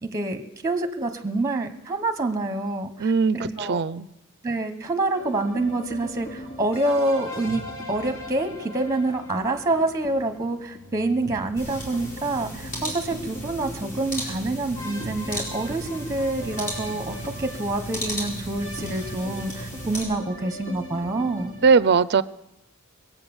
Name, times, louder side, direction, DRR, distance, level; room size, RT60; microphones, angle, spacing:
voice 1, 0.0-3.8 4.4-21.5, right 2 dB, 15° right, 8 dB, 1.1 m, -27 dB
voice 2, 3.0-4.1 21.6-22.2, right 5 dB, 50° right, 16 dB, 0.5 m, -19 dB
sound 1, 5.2-21.7, left 1 dB, 60° left, 2.7 m, -39 dB
sound 2, 11.6-20.0, equal, 35° left, 4.8 m, -35 dB
21.0 x 8.6 x 7.1 m, 0.93 s
head